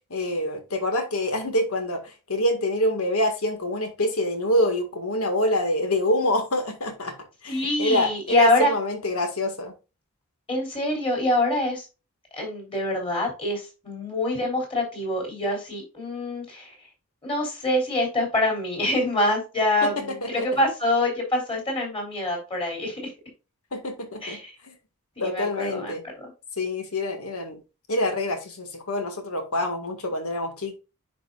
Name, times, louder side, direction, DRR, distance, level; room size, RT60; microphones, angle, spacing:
voice 1, 0.1-7.1 7.4-9.7 19.8-20.6 23.7-24.8 25.2-26.0 26.6-27.6 27.9-30.7, left 1 dB, 75° left, 5 dB, 1.9 m, -26 dB
voice 2, 7.5-8.7 10.5-11.9 12.3-16.8 17.2-23.1 24.2-24.5 25.2-26.3, left 1 dB, 25° left, 0 dB, 3.7 m, -25 dB
10.0 x 5.3 x 2.4 m, 0.30 s
head